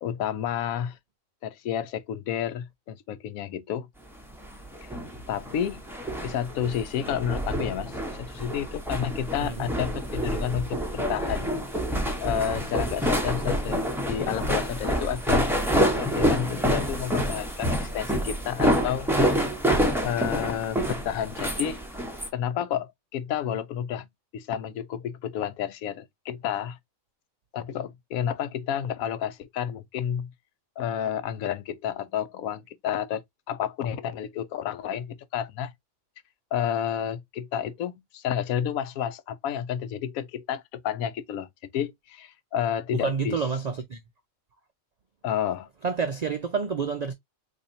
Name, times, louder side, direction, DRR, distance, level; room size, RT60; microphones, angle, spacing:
voice 1, 0.0-1.0 1.4-3.9 4.8-4.9 5.3-5.8 6.2-11.5 12.2-15.5 16.0-19.1 20.0-21.8 22.3-24.1 24.3-26.8 27.5-30.3 30.8-35.7 36.5-41.5 41.7-43.4 45.2-45.7, left 9 dB, 90° left, 1.0 m, -30 dB
sound 1, 4.3-22.3, equal, ahead, 0.7 m, -27 dB
voice 2, 43.0-44.0 45.8-47.1, right 5 dB, 80° right, 0.3 m, -28 dB
4.1 x 2.8 x 2.5 m
omnidirectional pair, 1.4 m